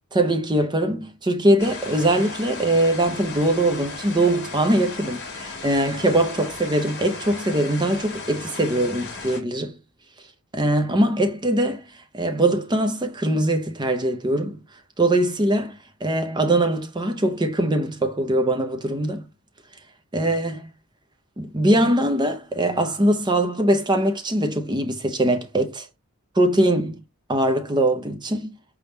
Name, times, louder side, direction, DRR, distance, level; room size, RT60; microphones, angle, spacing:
voice 1, 0.1-9.7 10.5-11.9 12.1-14.6 15.0-19.2 20.1-20.7 21.4-25.9 26.3-27.0 27.3-28.6, right 1 dB, 20° right, 0.7 m, -22 dB
sound 1, 1.6-9.4, left 4 dB, 50° left, 1.6 m, -36 dB
4.7 x 3.6 x 2.7 m
head